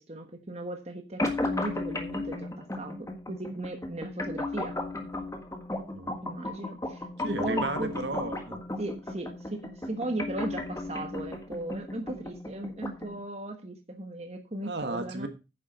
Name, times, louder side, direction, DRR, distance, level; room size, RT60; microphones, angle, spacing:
voice 1, 0.0-4.7 6.2-7.9 8.8-15.3, right 1 dB, 35° right, 4 dB, 1.2 m, -37 dB
sound 1, 1.2-13.2, left 2 dB, 15° left, 1.5 m, -35 dB
voice 2, 5.8-6.1 7.2-8.6 14.6-15.3, right 2 dB, 65° right, 7 dB, 1.6 m, -34 dB
9.7 x 7.4 x 5.0 m, 0.28 s
head